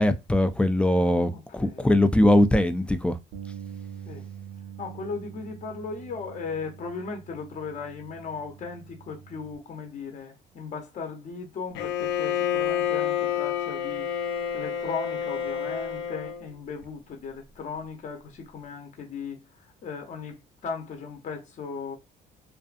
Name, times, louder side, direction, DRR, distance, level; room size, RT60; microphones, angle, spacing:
voice 1, 0.0-3.2, left 1 dB, 5° left, 0.3 m, -21 dB
voice 2, 1.3-1.9 4.1-4.3 4.8-14.1 14.5-22.0, left 5 dB, 45° left, 0.8 m, -37 dB
Bass guitar, 3.3-9.6, right 8 dB, 80° right, 0.7 m, -44 dB
Bowed string instrument, 11.7-16.5, left 9 dB, 90° left, 0.5 m, -29 dB
2.5 x 2.3 x 2.4 m
cardioid pair, 110°, 17 cm